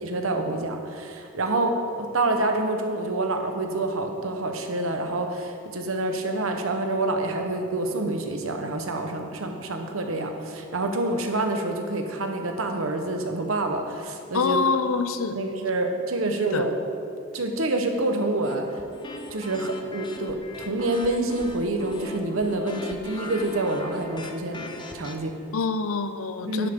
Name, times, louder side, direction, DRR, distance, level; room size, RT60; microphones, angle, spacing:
voice 1, 0.0-14.6 15.4-16.8 17.3-18.7 19.3-25.3 26.5-26.7, right 2 dB, 85° right, 4 dB, 1.1 m, -27 dB
voice 2, 14.3-15.4 16.4-16.7 25.5-26.7, left 4 dB, 90° left, 10 dB, 0.6 m, -26 dB
sound 1, 18.4-25.2, left 2 dB, 20° left, 0.6 m, -39 dB
11.0 x 10.5 x 3.7 m, 2.5 s
head